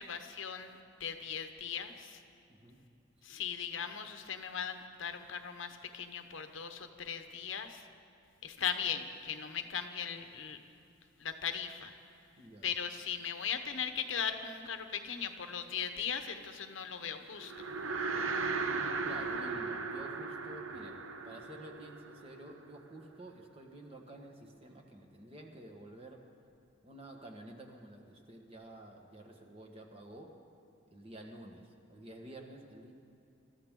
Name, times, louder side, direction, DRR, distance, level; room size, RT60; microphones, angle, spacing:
voice 1, 0.0-2.2 3.2-7.8 8.4-10.6 11.2-11.9 12.6-17.5, left 7 dB, 70° left, 7 dB, 1.0 m, -38 dB
voice 2, 12.4-12.7 19.0-26.2 26.8-30.4 30.9-32.9, right 1 dB, 30° right, 2 dB, 1.5 m, -50 dB
sound 1, 17.4-22.8, right 4 dB, 90° right, 0.9 m, -37 dB
25.0 x 13.5 x 3.8 m, 2.8 s
head